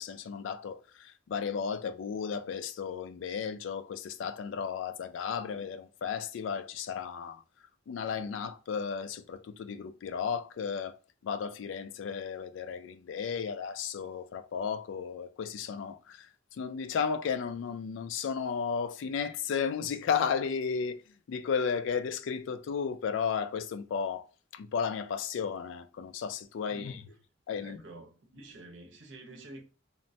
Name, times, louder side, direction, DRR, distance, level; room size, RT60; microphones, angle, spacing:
voice 1, 0.0-7.4 7.9-11.0 11.2-16.3 16.5-21.0 21.3-24.3 24.5-27.1 27.5-27.8, left 6 dB, 75° left, 0.3 m, -34 dB
voice 2, 26.7-27.0 27.6-29.6, right 2 dB, 70° right, 0.7 m, -48 dB
3.0 x 2.1 x 2.6 m
head